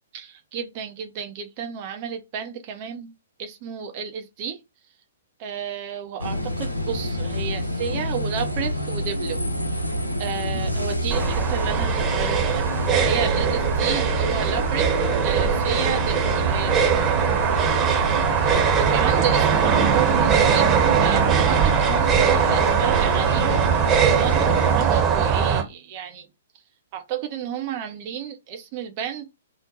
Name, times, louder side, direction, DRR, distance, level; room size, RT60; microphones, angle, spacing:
voice 1, 0.1-3.1 3.4-4.6 5.4-9.4 10.2-14.9 15.2-26.3 26.9-29.3, right 7 dB, 35° right, 0.5 m, -32 dB
sound 1, 6.2-24.8, right 1 dB, 85° left, 0.6 m, -28 dB
sound 2, 11.1-25.6, right 7 dB, 15° right, 0.9 m, -21 dB
2.9 x 2.1 x 3.8 m
figure-of-eight pair, 115°, 0 cm